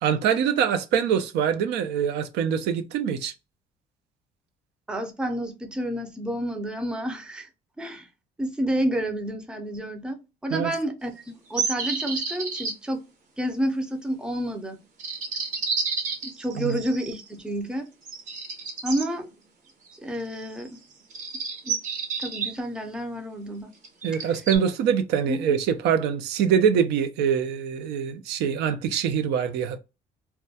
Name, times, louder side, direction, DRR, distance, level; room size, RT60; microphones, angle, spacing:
voice 1, 0.0-3.3 10.5-10.7 16.6-16.8 24.0-29.8, right 7 dB, 80° right, 0.4 m, -24 dB
voice 2, 4.9-7.5 7.8-8.1 8.4-13.0 13.4-14.8 16.2-17.9 18.8-19.3 20.0-20.8 21.6-21.8 22.2-23.7 25.3-25.6, right 1 dB, 5° right, 0.4 m, -30 dB
sound 1, 11.5-12.7 15.0-17.3 18.1-19.1 20.3-20.7 21.1-22.5 23.8-24.6, right 4 dB, 50° right, 0.7 m, -30 dB
2.2 x 2.2 x 2.7 m
cardioid pair, 110°, 17 cm